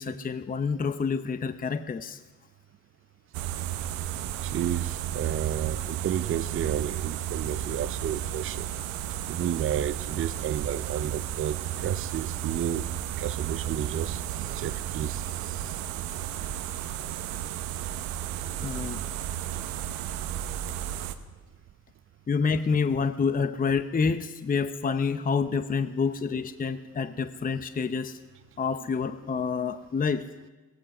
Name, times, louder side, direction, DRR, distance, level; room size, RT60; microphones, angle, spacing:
voice 1, 0.0-2.2 18.6-19.0 22.3-28.2 28.6-30.5, left 5 dB, 25° left, 10 dB, 0.7 m, -28 dB
sound 1, 3.3-21.1, right 11 dB, 90° right, 0.9 m, -33 dB
voice 2, 4.4-8.7 9.3-12.9 13.2-15.8, right 10 dB, 40° right, 11 dB, 0.6 m, -31 dB
16.5 x 15.0 x 5.5 m, 1.3 s
supercardioid pair, 70°, 34 cm